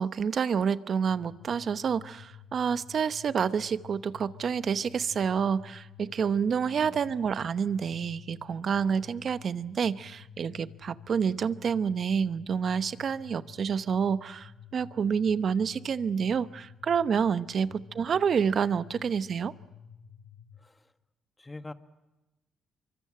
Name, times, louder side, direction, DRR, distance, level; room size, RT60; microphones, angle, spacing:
voice 1, 0.0-19.5, right 6 dB, 50° right, 13 dB, 0.9 m, -28 dB
sound 1, 1.0-20.6, left 7 dB, 90° left, 3.2 m, -51 dB
voice 2, 6.7-7.1 17.5-17.8 20.6-20.9 21.4-21.7, left 2 dB, 15° left, 9 dB, 1.5 m, -45 dB
24.5 x 24.0 x 7.7 m, 1.0 s
cardioid pair, 90°, 0 cm